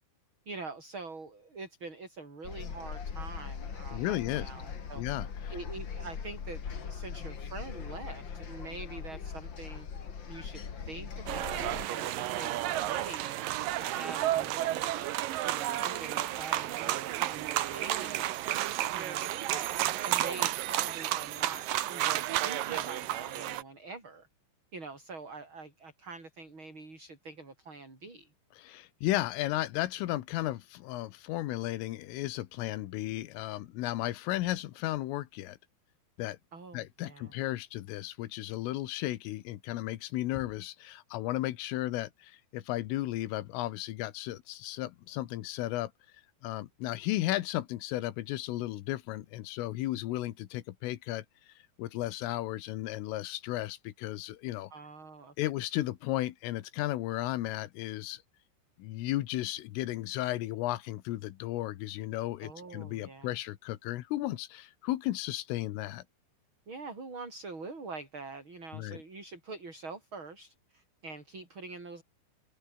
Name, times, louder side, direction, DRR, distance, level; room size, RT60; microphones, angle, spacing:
voice 1, 0.5-5.0 5.5-9.9 10.3-18.4 18.9-24.3 24.7-28.3 36.5-37.3 54.7-55.3 62.4-63.3 66.7-72.0, right 3 dB, 25° right, 6.3 m, -45 dB
sound 1, 2.4-11.8, left 6 dB, 70° left, 1.1 m, -40 dB
voice 2, 3.9-4.5 4.9-5.5 28.6-35.6 36.2-36.4 36.7-45.9 46.4-51.3 51.8-54.7 55.4-58.2 58.8-66.0 68.7-69.0, left 16 dB, 90° left, 3.9 m, -34 dB
sound 2, 11.3-23.6, right 14 dB, 85° right, 1.9 m, -32 dB
omnidirectional pair, 5.7 m